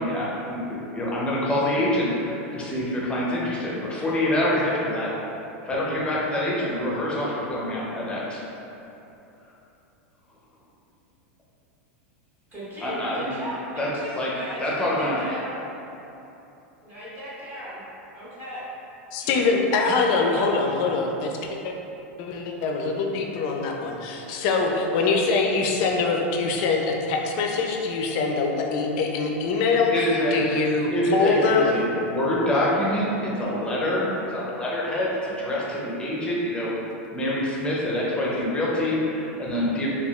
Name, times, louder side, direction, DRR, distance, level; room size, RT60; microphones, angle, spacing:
voice 1, 0.0-5.1 5.7-8.4 12.8-13.4 13.8-13.9 14.2-14.3 14.6-15.2 29.9-36.8 37.1-39.9, left 1 dB, 15° left, -5 dB, 0.6 m, -26 dB
voice 2, 12.5-15.6 16.8-17.8 18.1-18.6 19.2-19.5 20.0-20.5, equal, 25° right, -11 dB, 1.3 m, -37 dB
voice 3, 19.1-21.3 21.6-21.7 22.2-29.9 30.3-31.7, left 4 dB, 55° left, 1 dB, 0.4 m, -23 dB
3.4 x 2.3 x 2.3 m, 3.0 s
supercardioid pair, 120°, 7 cm